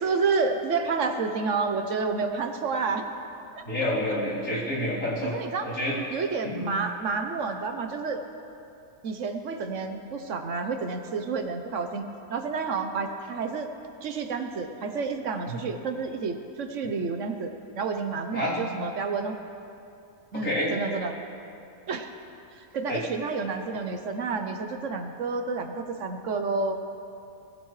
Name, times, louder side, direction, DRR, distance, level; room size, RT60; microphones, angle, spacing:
voice 1, 0.0-3.1 3.5-3.9 5.2-5.7 6.1-8.2 9.0-12.0 12.3-13.7 14.0-19.4 20.3-21.2 21.9-22.1 22.5-26.8, right 4 dB, 60° right, 6 dB, 1.1 m, -30 dB
voice 2, 3.6-5.3 5.6-6.0 6.4-6.7 15.5-15.7 18.3-18.6 20.4-20.7 22.9-23.0, left 1 dB, 80° left, -8 dB, 4.0 m, -28 dB
19.5 x 16.0 x 3.2 m, 2.7 s
omnidirectional pair, 1.5 m